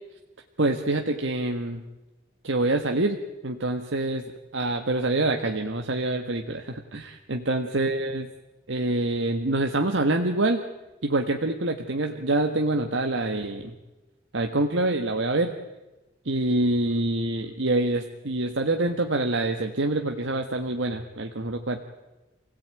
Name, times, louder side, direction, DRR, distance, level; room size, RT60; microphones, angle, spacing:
voice 1, 0.6-1.8 2.4-3.2 3.4-4.2 4.5-8.3 8.7-10.6 11.0-13.7 14.3-15.5 16.2-21.8, right 2 dB, 70° right, 4 dB, 1.6 m, -26 dB
28.0 x 17.0 x 9.1 m, 1.1 s
head